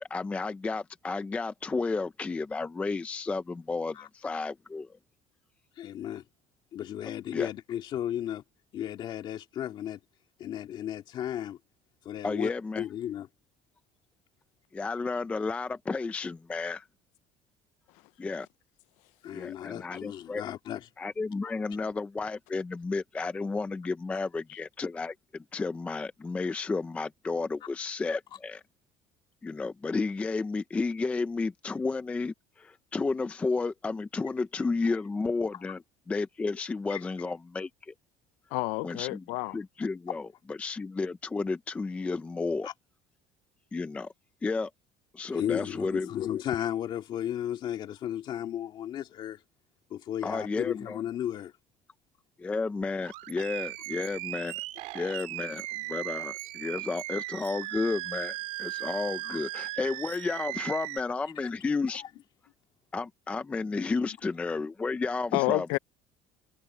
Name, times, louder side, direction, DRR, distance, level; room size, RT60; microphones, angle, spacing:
voice 1, 0.0-4.9 7.3-7.5 12.2-12.9 14.7-16.9 18.2-18.5 19.3-20.4 21.0-28.6 29.4-35.8 36.1-37.9 38.8-39.2 39.5-42.7 43.7-44.1 44.4-44.7 45.1-46.1 50.2-51.0 52.4-54.5 54.9-62.0 62.9-65.8, left 4 dB, 10° left, 0.4 m, -32 dB
voice 2, 5.8-6.2 6.7-8.4 8.7-10.0 10.4-11.6 12.0-13.3 19.2-20.9 21.5-21.7 36.9-37.0 40.1-40.2 42.6-42.7 45.3-49.4 49.9-51.5 59.2-59.4 61.4-61.5 61.9-62.1 64.1-64.2, left 11 dB, 40° left, 2.3 m, -34 dB
voice 3, 38.5-39.6 65.3-65.8, left 23 dB, 85° left, 0.4 m, -29 dB
Animal, 53.0-61.0, right 19 dB, 70° right, 2.1 m, -37 dB
cardioid pair, 180°, 12 cm